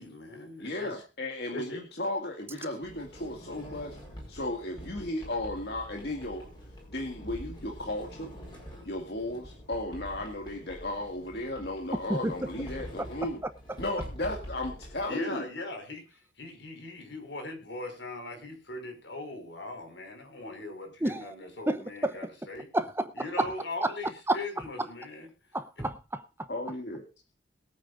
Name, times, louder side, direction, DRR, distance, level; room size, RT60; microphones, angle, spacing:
voice 1, 0.0-0.9 1.5-1.8 15.1-22.7 23.1-25.3, left 2 dB, 70° left, 5.5 m, -40 dB
voice 2, 0.6-4.0 4.3-6.5 6.9-8.3 8.9-13.4 13.8-15.5 26.5-27.0, left 1 dB, 55° left, 2.2 m, -35 dB
Sliding door, 2.8-15.1, equal, 25° left, 5.3 m, -46 dB
voice 3, 21.0-21.3 21.7-22.2 22.7-23.1 23.4-23.5 23.8-23.9 24.3-24.4 25.5-26.5, right 1 dB, 10° right, 0.7 m, -29 dB
22.0 x 9.0 x 2.6 m
head